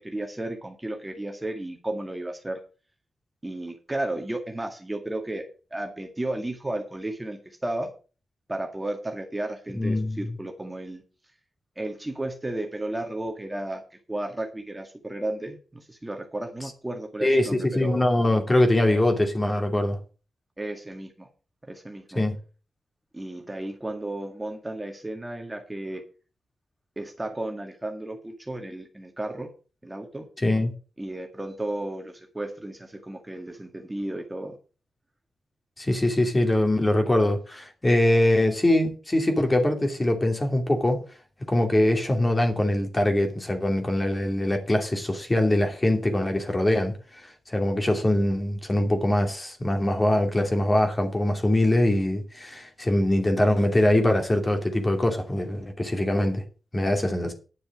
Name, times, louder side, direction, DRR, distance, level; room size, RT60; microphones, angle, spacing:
voice 1, 0.0-2.6 3.4-7.9 8.5-11.0 11.8-18.0 20.6-21.3 21.7-22.2 23.1-26.0 27.0-29.5 29.8-30.3 31.0-34.6, right 1 dB, 15° right, 1.9 m, -33 dB
voice 2, 9.7-10.3 17.2-20.0 22.2-22.4 30.4-30.7 35.8-41.0 41.5-56.4 56.7-57.3, left 1 dB, 20° left, 2.6 m, -23 dB
10.0 x 6.8 x 7.2 m
wide cardioid pair, 105°, 0 cm